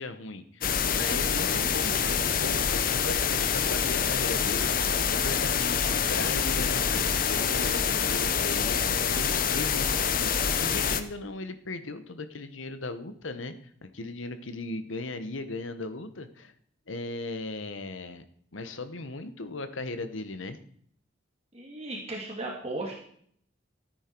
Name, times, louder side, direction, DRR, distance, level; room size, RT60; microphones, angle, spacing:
voice 1, 0.0-8.8 9.1-13.5 13.8-16.5 16.9-18.2 18.5-20.6, left 2 dB, 85° left, 10 dB, 1.1 m, -37 dB
sound 1, 0.6-11.0, left 7 dB, 45° left, 0.8 m, -26 dB
voice 2, 21.5-22.9, right 2 dB, 30° right, -1 dB, 2.1 m, -35 dB
14.0 x 9.1 x 4.5 m, 0.62 s
head